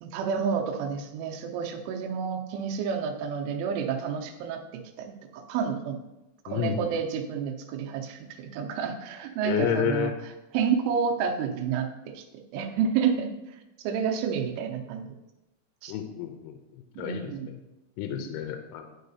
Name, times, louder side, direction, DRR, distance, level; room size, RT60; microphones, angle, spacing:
voice 1, 0.0-4.6 5.0-6.0 6.5-10.1 10.5-12.2 12.5-13.3 13.8-15.1 15.8-15.9 17.0-17.5 18.1-18.3, right 6 dB, 85° right, 4 dB, 3.2 m, -29 dB
voice 2, 6.5-7.0 9.4-10.1 15.9-16.6 17.0-17.6 18.0-18.9, left 8 dB, 85° left, 5 dB, 3.0 m, -30 dB
11.5 x 5.6 x 2.7 m, 0.98 s
omnidirectional pair, 5.6 m